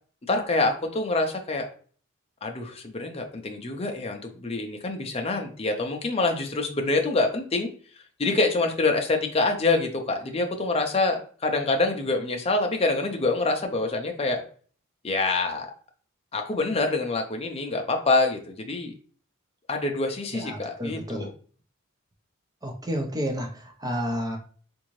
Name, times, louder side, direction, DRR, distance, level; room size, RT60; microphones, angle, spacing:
voice 1, 0.3-1.7 2.4-7.7 8.2-14.4 15.0-15.7 16.3-18.9 19.7-21.3, left 3 dB, 25° left, 3 dB, 0.5 m, -26 dB
voice 2, 20.3-21.3 22.6-23.5 23.8-24.4, equal, 15° right, 2 dB, 0.6 m, -30 dB
3.7 x 2.6 x 3.0 m, 0.44 s
head